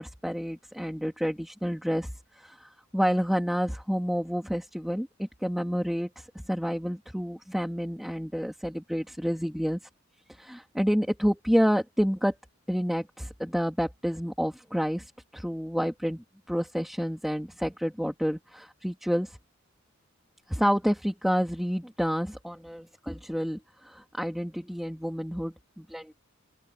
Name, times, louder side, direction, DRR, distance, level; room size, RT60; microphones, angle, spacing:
voice 1, 0.0-2.1 2.4-9.8 10.3-12.3 12.7-19.4 20.5-26.1, equal, ahead, 1.9 m, -29 dB
open air
head